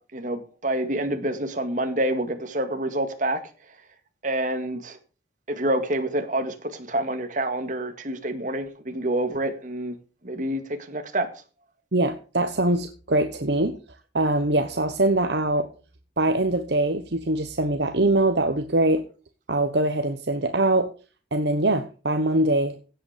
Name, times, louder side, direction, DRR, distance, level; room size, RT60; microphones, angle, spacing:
voice 1, 0.1-3.4 4.2-5.0 5.5-10.0 10.2-11.3, right 1 dB, 40° right, 7 dB, 2.1 m, -27 dB
voice 2, 11.9-13.8 14.1-15.7 16.2-19.0 19.5-20.9 21.3-22.7, right 2 dB, 60° right, 7 dB, 1.1 m, -23 dB
16.5 x 8.2 x 5.1 m, 0.37 s
head